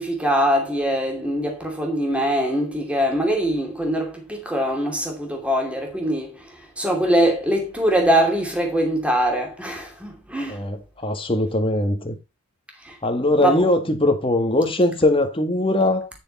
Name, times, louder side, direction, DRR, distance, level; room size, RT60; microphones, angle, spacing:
voice 1, 0.0-10.6 12.8-13.0 13.4-13.7, right 1 dB, 5° right, 2.7 m, -22 dB
voice 2, 10.5-12.2 13.0-16.1, left 1 dB, 25° left, 1.7 m, -21 dB
11.0 x 6.8 x 4.2 m
head